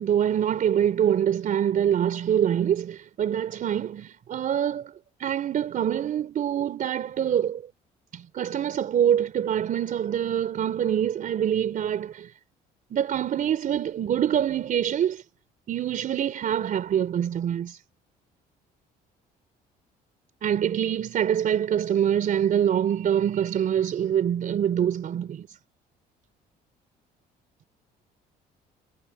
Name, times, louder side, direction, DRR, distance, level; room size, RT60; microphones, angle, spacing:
voice 1, 0.0-4.9 5.2-7.6 8.1-12.3 12.9-15.2 15.7-17.8 20.4-25.6, right 9 dB, 50° right, 3.7 m, -25 dB
cardioid pair, 110°, 17 cm